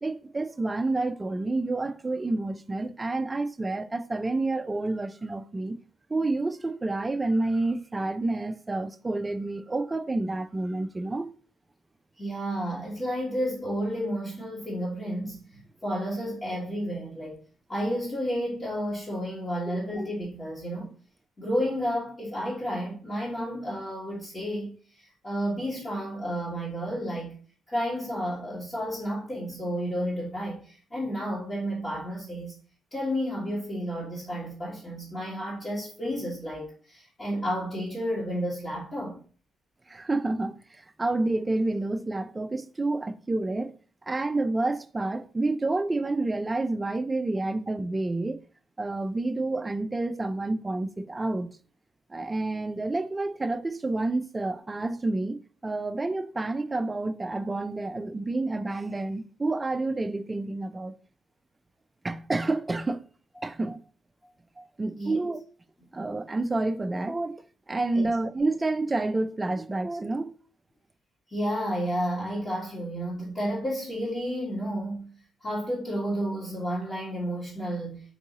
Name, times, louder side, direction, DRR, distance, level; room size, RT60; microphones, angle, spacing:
voice 1, 0.0-5.8 6.1-11.3 19.7-19.8 39.9-43.7 44.1-48.4 48.8-51.5 52.1-60.9 62.0-63.1 63.4-63.8 64.6-65.4 65.9-67.4 67.7-70.3, right 2 dB, 20° right, 0.3 m, -29 dB
voice 2, 12.2-17.4 17.7-20.9 21.4-27.3 27.7-32.5 32.9-39.2 64.9-65.2 67.9-68.1 71.3-75.1 75.4-78.0, equal, 35° left, 1.5 m, -31 dB
4.6 x 2.7 x 2.7 m
cardioid pair, 90°, 0 cm